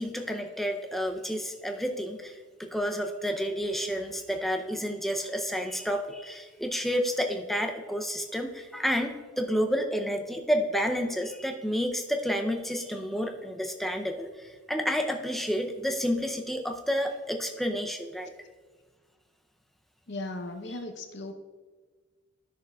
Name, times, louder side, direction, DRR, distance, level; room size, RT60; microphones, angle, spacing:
voice 1, 0.0-18.3, equal, ahead, 4 dB, 0.5 m, -30 dB
voice 2, 20.1-21.3, left 2 dB, 50° left, 5 dB, 0.8 m, -37 dB
13.0 x 6.5 x 2.3 m, 1.4 s
head